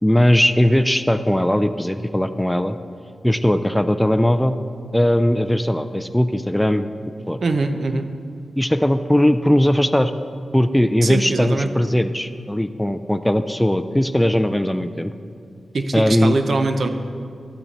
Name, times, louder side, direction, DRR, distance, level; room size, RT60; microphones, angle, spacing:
voice 1, 0.0-2.8 3.2-4.6 4.9-6.9 7.3-7.4 8.6-10.1 10.5-15.1 15.9-16.4, left 1 dB, 5° left, 10 dB, 0.4 m, -19 dB
voice 2, 7.4-8.1 11.0-11.7 15.7-16.9, right 3 dB, 65° right, 7 dB, 0.7 m, -22 dB
12.0 x 8.7 x 4.1 m, 2.3 s
wide cardioid pair, 85°, 0 cm